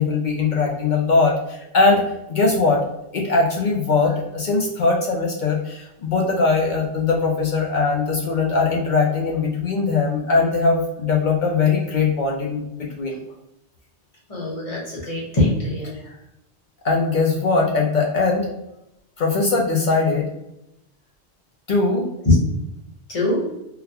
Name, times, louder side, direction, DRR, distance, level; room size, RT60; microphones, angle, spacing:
voice 1, 0.0-2.0 2.3-2.8 3.1-13.2 16.0-16.1 16.8-18.5 19.2-20.3 21.7-22.1, left 4 dB, 55° left, -1 dB, 0.6 m, -20 dB
voice 2, 14.3-15.9 22.2-22.3 23.1-23.4, left 2 dB, 35° left, -4 dB, 1.1 m, -21 dB
3.8 x 2.2 x 2.8 m, 0.85 s
omnidirectional pair, 1.1 m